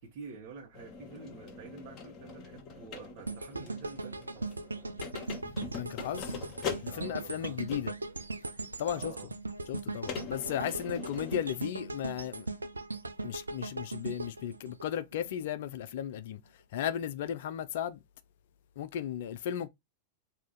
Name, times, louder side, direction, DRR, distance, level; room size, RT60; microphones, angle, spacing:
voice 1, 0.0-4.6 6.9-7.6 8.9-9.3, right 5 dB, 50° right, 1.2 m, -48 dB
sound 1, 0.7-8.1 8.9-9.0 10.1-11.4, left 6 dB, 35° left, 1.0 m, -43 dB
sound 2, 3.3-15.4 15.9-16.0, right 3 dB, 80° right, 0.4 m, -39 dB
voice 2, 5.7-6.4 6.8-7.9 8.8-9.1 9.7-12.5 13.2-18.0 18.8-19.7, left 10 dB, 55° left, 0.4 m, -35 dB
4.7 x 2.7 x 3.8 m
figure-of-eight pair, 90°, 0 cm